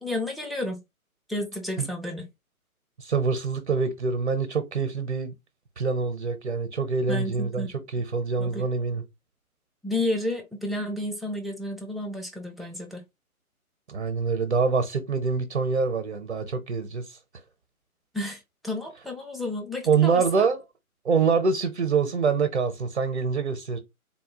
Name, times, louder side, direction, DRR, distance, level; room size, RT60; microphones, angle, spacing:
voice 1, 0.0-0.8 1.3-2.3 7.1-7.7 8.4-8.7 9.8-13.0 18.1-20.5, left 1 dB, ahead, 0.3 m, -31 dB
voice 2, 3.0-5.3 5.8-7.7 7.9-9.0 13.9-17.2 19.9-20.6 21.0-23.8, right 5 dB, 50° right, 0.7 m, -25 dB
3.7 x 2.3 x 3.5 m
figure-of-eight pair, 145°, 44 cm